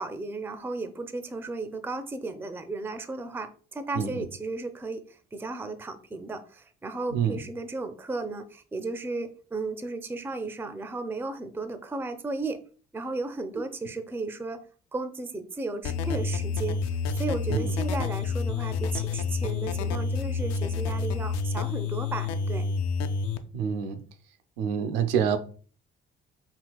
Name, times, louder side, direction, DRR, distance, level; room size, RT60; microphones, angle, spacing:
voice 1, 0.0-12.6 12.9-14.6 14.9-22.7, right 3 dB, 5° right, 0.5 m, -34 dB
sound 1, 15.8-23.4, left 4 dB, 55° left, 0.5 m, -29 dB
voice 2, 23.5-24.0 24.6-25.4, right 7 dB, 70° right, 0.6 m, -27 dB
5.0 x 2.8 x 2.3 m
figure-of-eight pair, 45°, 31 cm